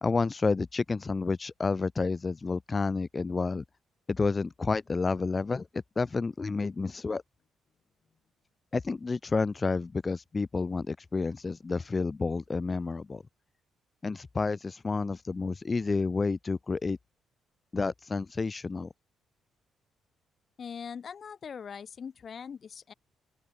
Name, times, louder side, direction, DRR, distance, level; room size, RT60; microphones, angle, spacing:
voice 1, 0.0-3.6 4.1-7.2 8.7-13.2 14.0-17.0 17.7-18.9, left 4 dB, 30° left, 1.2 m, -30 dB
voice 2, 20.6-22.9, left 7 dB, 50° left, 3.5 m, -41 dB
open air
cardioid pair, 90°, 0 cm